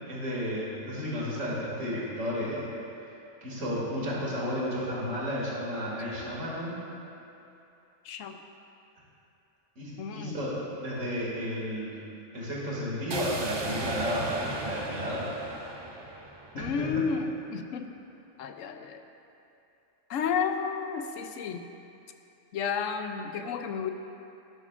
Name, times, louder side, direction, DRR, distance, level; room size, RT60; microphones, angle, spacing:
voice 1, 0.1-2.6 3.4-6.8 9.8-10.5 10.8-11.9 12.3-15.6 16.6-16.9, equal, 85° right, -6 dB, 2.8 m, -32 dB
voice 2, 8.0-8.4 10.0-10.4 16.5-17.9 18.4-19.0 20.1-21.7 22.5-23.9, left 6 dB, 85° left, 7 dB, 1.0 m, -32 dB
sound 1, 13.1-17.2, right 2 dB, 30° right, 0.5 m, -37 dB
12.0 x 12.0 x 2.5 m, 2.8 s
omnidirectional pair, 1.3 m